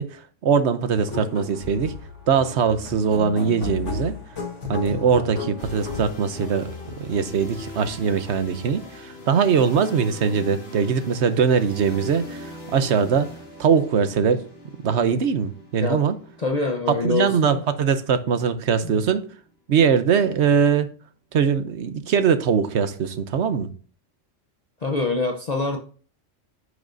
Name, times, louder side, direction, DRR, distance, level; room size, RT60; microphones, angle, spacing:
voice 1, 0.0-1.9 2.3-4.2 4.7-13.3 13.6-14.4 14.8-16.2 16.9-19.3 19.7-20.9 21.3-23.7, right 6 dB, 65° right, 1.0 m, -21 dB
sound 1, 0.9-7.3, left 6 dB, 70° left, 1.8 m, -34 dB
sound 2, 5.6-19.4, left 2 dB, 55° left, 2.3 m, -41 dB
voice 2, 16.4-17.6 18.8-19.0 24.8-25.8, left 3 dB, 35° left, 0.8 m, -25 dB
10.5 x 6.5 x 2.6 m
omnidirectional pair, 1.3 m